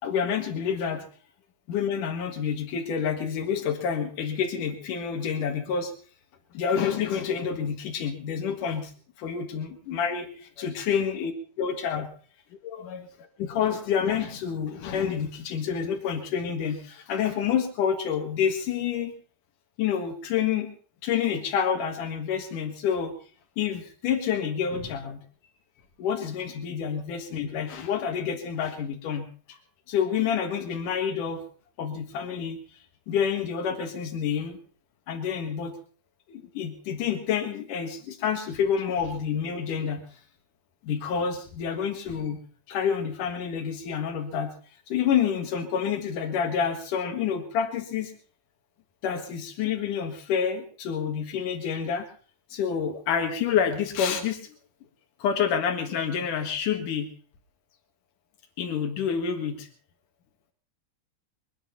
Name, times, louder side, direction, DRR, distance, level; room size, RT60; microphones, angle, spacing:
voice 1, 0.0-1.1 1.7-5.9 6.5-8.9 9.2-10.3 10.6-11.3 11.6-12.1 12.6-13.0 13.4-19.1 19.8-20.7 21.0-23.1 23.6-25.2 26.0-29.6 29.9-31.4 31.8-34.6 35.1-35.7 36.3-40.2 40.8-42.4 42.7-44.5 44.9-48.1 49.0-52.1 52.5-54.5 55.2-57.1 58.6-59.7, left 7 dB, 85° left, 5 dB, 3.2 m, -28 dB
23.0 x 10.0 x 5.6 m, 0.43 s
omnidirectional pair, 3.6 m